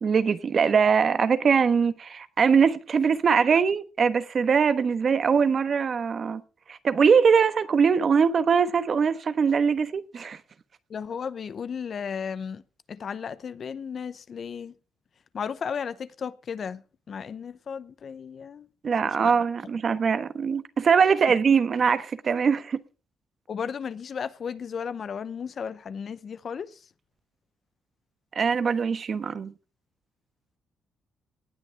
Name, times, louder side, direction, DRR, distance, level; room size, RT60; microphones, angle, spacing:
voice 1, 0.0-6.4 6.7-10.4 18.8-22.8 28.3-29.5, right 6 dB, 45° right, 1.2 m, -22 dB
voice 2, 10.9-12.6 12.9-14.7 15.3-18.7 19.0-19.4 23.5-26.8, left 6 dB, 50° left, 0.8 m, -34 dB
18.5 x 9.1 x 3.5 m
cardioid pair, 90°, 0 cm